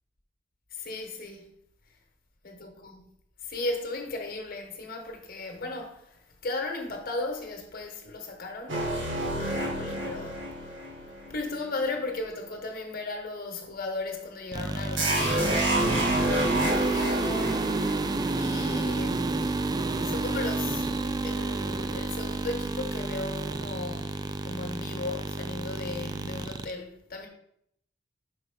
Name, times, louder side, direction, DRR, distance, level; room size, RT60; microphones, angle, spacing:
voice 1, 0.7-1.5 2.4-3.1 3.4-8.8 9.2-10.7 11.3-17.7 18.3-19.5 20.0-20.9 21.2-27.3, left 2 dB, 50° left, 1.2 m, -36 dB
sound 1, 8.7-12.1 15.0-19.1, right 1 dB, 75° right, 1.8 m, -30 dB
sound 2, 14.5-26.7, right 3 dB, 20° right, 0.3 m, -30 dB
5.4 x 4.1 x 5.5 m
head